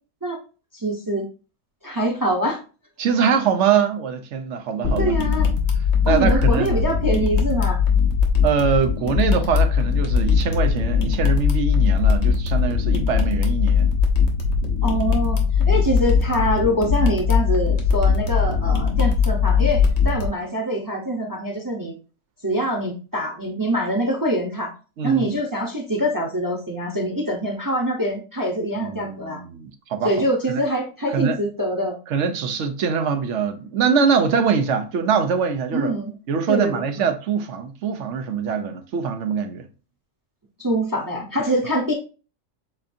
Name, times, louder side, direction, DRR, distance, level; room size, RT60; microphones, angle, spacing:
voice 1, 0.7-1.3 1.8-2.6 5.0-5.5 6.0-7.8 14.8-22.0 22.4-24.7 25.0-29.4 30.0-32.0 35.7-36.1 36.5-37.1 40.6-41.9, equal, 20° right, 0.7 m, -24 dB
voice 2, 3.0-5.2 6.1-6.7 8.4-13.9 25.0-25.3 28.8-30.1 30.5-30.6 31.1-31.4 32.1-35.9 36.3-39.7, right 6 dB, 70° right, 0.9 m, -23 dB
sound 1, 4.8-20.3, left 6 dB, 60° left, 1.2 m, -20 dB
7.5 x 2.6 x 2.6 m
omnidirectional pair, 1.3 m